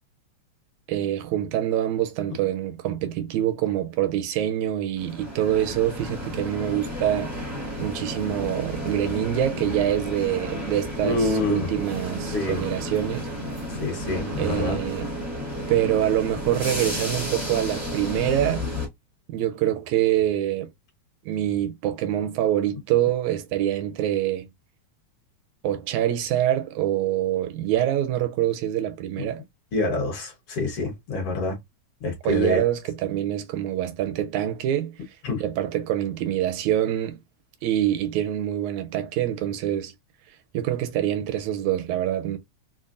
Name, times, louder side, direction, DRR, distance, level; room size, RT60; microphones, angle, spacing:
voice 1, 0.9-7.3 7.8-13.3 14.4-15.1 15.7-18.6 19.3-20.7 21.3-24.5 25.6-29.4 32.3-34.9 35.4-37.2 37.6-39.9 40.5-42.4, right 11 dB, 80° right, 1.9 m, -25 dB
sound 1, 5.0-18.9, equal, 15° right, 0.6 m, -32 dB
voice 2, 11.0-11.7 12.3-12.6 13.7-14.8 29.7-31.6 32.0-32.6 35.2-35.4, left 2 dB, 60° left, 1.8 m, -26 dB
5.2 x 2.1 x 2.4 m
omnidirectional pair, 3.3 m